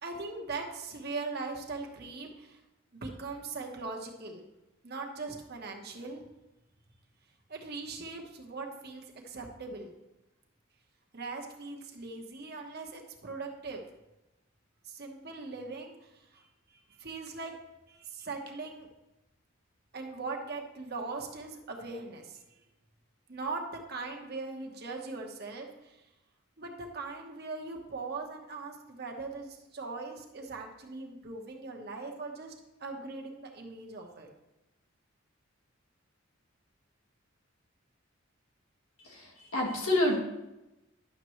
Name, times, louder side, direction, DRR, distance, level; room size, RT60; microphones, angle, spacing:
voice 1, 0.0-2.6 2.9-4.4 4.8-6.2 7.5-9.9 11.1-13.8 14.8-17.5 17.9-18.9 19.9-22.4 23.3-26.0 26.6-32.5 32.8-34.3, right 3 dB, 50° right, 1 dB, 1.2 m, -40 dB
voice 2, 39.0-40.2, left 1 dB, 85° left, -1 dB, 1.9 m, -28 dB
11.0 x 6.7 x 3.2 m, 0.97 s
head